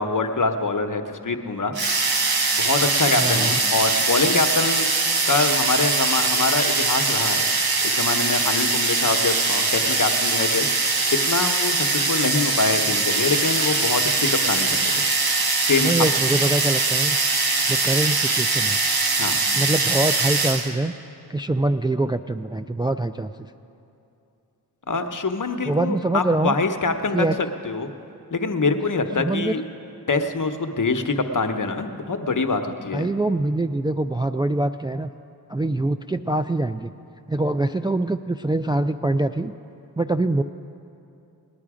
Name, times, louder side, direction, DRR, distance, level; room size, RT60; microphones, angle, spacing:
voice 1, 0.0-1.7 2.5-4.9 5.3-7.4 7.8-10.9 11.2-15.0 15.6-15.9 19.2-19.4 24.9-27.3 27.6-27.9 28.3-29.6 30.1-33.1, left 3 dB, 50° left, 7 dB, 1.0 m, -24 dB
sound 1, 1.8-20.7, right 3 dB, 65° right, 1.2 m, -22 dB
voice 2, 3.2-3.6 15.8-17.2 17.7-18.8 19.5-20.9 21.3-23.3 25.6-26.6 27.1-27.3 29.2-29.5 32.9-35.1 35.5-36.9 37.3-39.5 40.0-40.4, right 2 dB, 10° right, 8 dB, 0.3 m, -24 dB
19.5 x 10.5 x 4.9 m, 2.7 s
cardioid pair, 45°, 39 cm